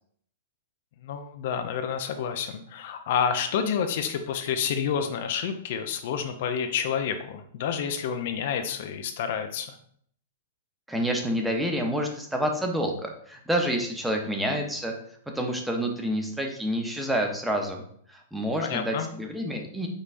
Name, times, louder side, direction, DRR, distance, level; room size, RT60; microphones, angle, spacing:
voice 1, 1.0-9.8 18.6-19.1, left 7 dB, 60° left, 7 dB, 0.5 m, -29 dB
voice 2, 10.9-14.9 15.3-17.8 18.1-19.9, equal, 5° right, 2 dB, 0.7 m, -28 dB
5.3 x 3.1 x 2.5 m, 0.62 s
hypercardioid pair, 120°, 0 cm